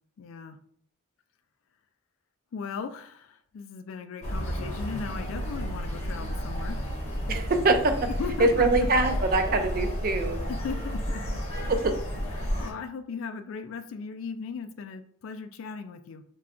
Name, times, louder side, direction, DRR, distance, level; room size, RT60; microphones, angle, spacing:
voice 1, 0.2-0.6 2.5-6.8 8.1-8.9 10.5-11.4 12.4-16.2, left 5 dB, 65° left, 9 dB, 0.3 m, -37 dB
sound 1, 4.2-12.7, equal, 30° left, 0.7 m, -31 dB
voice 2, 7.3-7.9 8.4-10.4 11.7-11.9, right 2 dB, 40° right, 6 dB, 0.3 m, -23 dB
2.3 x 2.2 x 3.6 m, 0.62 s
head